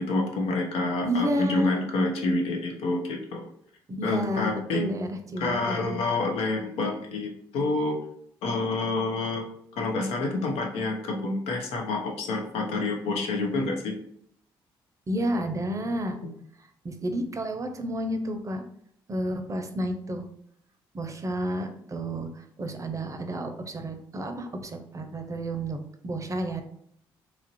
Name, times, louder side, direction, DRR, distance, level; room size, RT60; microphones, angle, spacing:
voice 1, 0.0-3.5 4.0-4.8 5.4-8.0 8.4-9.4 9.7-13.9 16.2-16.3, left 2 dB, 75° left, 2 dB, 0.7 m, -28 dB
voice 2, 1.0-1.7 3.9-6.0 15.1-16.2 16.8-18.6 19.1-20.3 20.9-26.6, right 1 dB, 30° right, 6 dB, 0.6 m, -31 dB
3.0 x 2.5 x 2.9 m, 0.69 s
hypercardioid pair, 50°, 10 cm